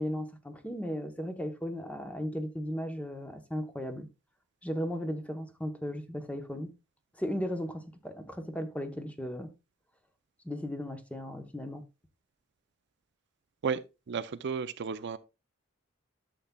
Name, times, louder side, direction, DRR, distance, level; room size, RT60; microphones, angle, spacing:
voice 1, 0.0-4.1 4.6-6.7 7.2-9.5 10.4-11.8, equal, 5° left, 0.9 m, -36 dB
voice 2, 13.6-15.2, right 6 dB, 60° right, 0.5 m, -33 dB
12.0 x 7.0 x 2.3 m
head